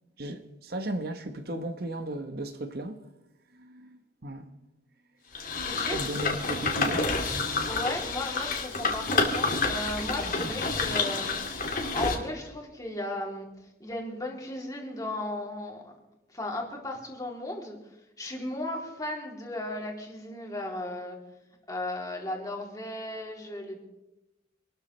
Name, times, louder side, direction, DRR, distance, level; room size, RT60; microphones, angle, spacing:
voice 1, 0.2-3.0 3.5-4.5 5.9-7.6, right 1 dB, 55° right, 1.1 m, -36 dB
sound 1, 5.3-12.1, left 3 dB, 45° left, 2.3 m, -29 dB
voice 2, 5.6-6.3 7.6-11.6 11.9-13.5 13.8-15.9 16.3-17.8 18.2-21.2 21.7-23.8, left 1 dB, 20° left, 3.0 m, -35 dB
26.5 x 13.0 x 3.3 m
head